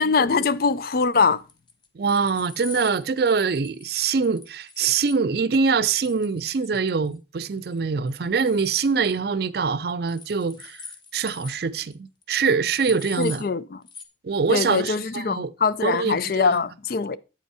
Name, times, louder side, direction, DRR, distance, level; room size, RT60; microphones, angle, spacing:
voice 1, 0.0-1.4 13.2-13.8 14.5-17.2, left 5 dB, 50° left, 0.4 m, -22 dB
sound 1, 1.5-5.2 6.0-7.1 7.4-7.8 8.1-9.2 10.1-11.6 11.9-12.0 12.2-12.3 12.6-13.5 13.9-14.0, left 5 dB, 25° left, 0.8 m, -43 dB
voice 2, 2.0-10.8 11.1-13.4 14.2-15.5 15.8-16.6, right 5 dB, 55° right, 0.4 m, -24 dB
8.4 x 5.3 x 4.8 m
head